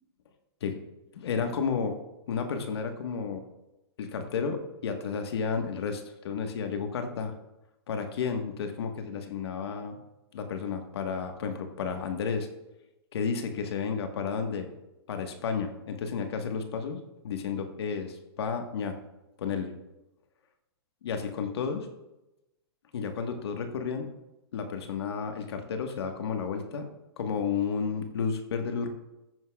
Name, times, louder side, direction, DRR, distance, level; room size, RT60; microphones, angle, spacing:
voice 1, 1.1-2.0 2.3-3.4 4.0-7.3 7.9-10.0 10.3-12.5 13.1-14.7 15.1-19.0 19.4-19.7 21.0-21.9 22.9-24.1 24.5-26.9 27.2-28.9, left 6 dB, 75° left, 5 dB, 1.3 m, -32 dB
14.5 x 9.3 x 2.3 m, 0.95 s
hypercardioid pair, 135°, 13 cm